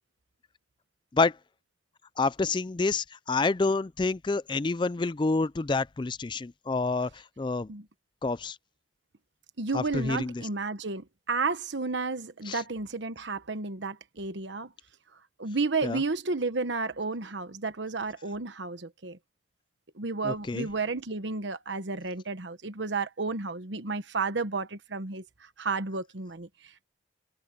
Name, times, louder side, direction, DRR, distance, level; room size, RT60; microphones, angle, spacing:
voice 1, 2.2-7.7 8.2-8.6 9.7-10.5 12.5-12.6 15.8-16.0 20.2-20.7, left 3 dB, 25° left, 0.4 m, -28 dB
voice 2, 9.6-14.7 15.4-19.2 20.0-26.8, right 4 dB, 70° right, 1.1 m, -32 dB
head